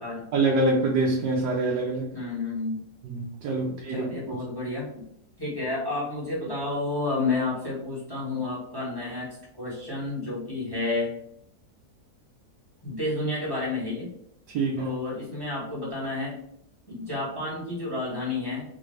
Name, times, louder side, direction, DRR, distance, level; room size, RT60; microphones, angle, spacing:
voice 1, 0.3-2.1 3.0-4.4 14.5-14.9, right 2 dB, 85° right, -1 dB, 1.2 m, -25 dB
voice 2, 2.1-2.8 3.9-5.0 5.4-11.1 12.8-14.1 14.8-16.4 16.8-18.6, left 2 dB, 15° left, -6 dB, 1.3 m, -30 dB
4.0 x 2.5 x 3.2 m, 0.72 s
omnidirectional pair, 1.7 m